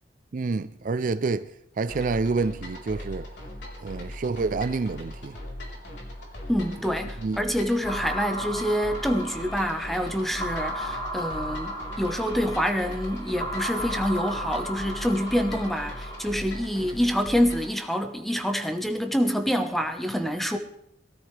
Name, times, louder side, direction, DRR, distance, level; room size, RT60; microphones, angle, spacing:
voice 1, 0.3-1.5 1.8-3.3 3.8-5.4 7.2-7.4, right 4 dB, 50° right, 0.4 m, -28 dB
sound 1, 1.9-17.8, left 1 dB, 85° left, 3.8 m, -39 dB
voice 2, 6.5-20.6, equal, ahead, 1.1 m, -26 dB
sound 2, 7.8-16.3, equal, 25° left, 2.4 m, -35 dB
22.0 x 13.0 x 3.3 m
head